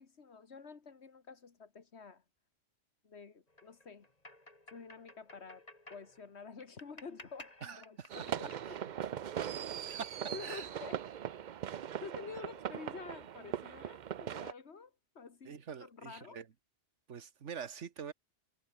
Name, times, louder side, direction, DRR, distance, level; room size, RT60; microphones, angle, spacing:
voice 1, 0.0-2.2 3.0-4.1 4.7-9.1 10.2-11.0 12.0-16.4, left 5 dB, 65° left, 2.0 m, -50 dB
sound 1, 3.5-10.2, left 1 dB, 35° left, 3.8 m, -57 dB
voice 2, 7.6-8.2 8.4-8.8 9.8-10.1 10.4-10.7 15.4-16.5 17.1-18.1, right 7 dB, 90° right, 1.6 m, -45 dB
sound 2, 8.1-14.5, right 9 dB, 50° right, 0.6 m, -40 dB
omnidirectional pair, 1.2 m